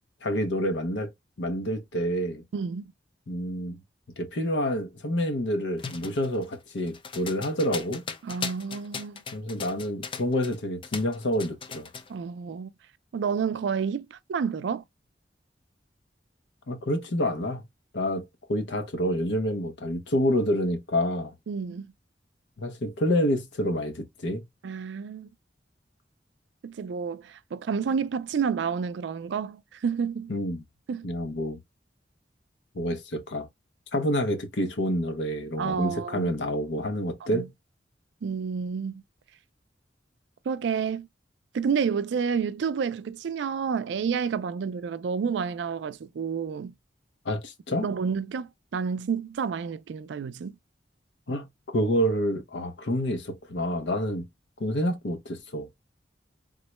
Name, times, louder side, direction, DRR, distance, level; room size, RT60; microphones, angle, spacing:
voice 1, 0.2-1.1 1.4-2.4 3.3-3.8 4.2-8.0 9.3-11.9 16.7-17.6 17.9-21.3 22.6-24.4 30.3-30.6 31.0-31.6 32.7-33.5 33.9-37.5 47.2-47.9 51.3-54.3 54.6-55.7, equal, 80° left, 0.7 m, -28 dB
voice 2, 2.5-2.9 8.2-9.2 12.1-12.7 13.1-14.8 21.5-21.9 24.6-25.3 26.6-30.3 30.9-31.1 35.6-36.3 37.3-37.5 38.2-39.0 40.5-41.1 41.5-46.7 47.8-50.5, right 6 dB, 75° right, 0.3 m, -30 dB
sound 1, 5.8-10.6 10.8-12.1, left 5 dB, 30° left, 0.4 m, -38 dB
3.7 x 2.1 x 2.9 m
head